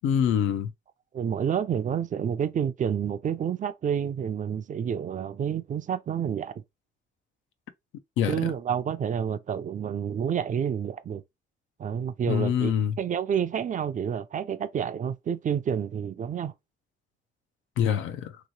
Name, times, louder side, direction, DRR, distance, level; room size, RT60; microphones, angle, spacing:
voice 1, 0.0-0.7 8.2-8.5 12.3-12.9 17.8-18.4, left 8 dB, 85° left, 0.5 m, -25 dB
voice 2, 1.1-6.5 8.3-11.2 11.8-16.5, right 8 dB, 40° right, 0.4 m, -29 dB
3.1 x 3.0 x 2.6 m
cardioid pair, 90°, 20 cm